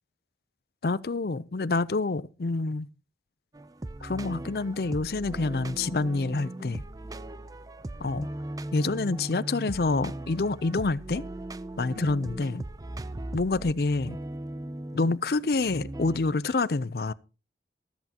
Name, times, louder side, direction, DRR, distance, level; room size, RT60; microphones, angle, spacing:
voice 1, 0.8-2.9 4.0-6.8 8.0-8.3 8.7-11.3 11.8-12.6 13.3-14.2 14.9-17.1, left 3 dB, 60° left, 0.5 m, -27 dB
sound 1, 3.5-16.3, right 1 dB, 20° right, 0.5 m, -38 dB
14.0 x 13.0 x 2.9 m
head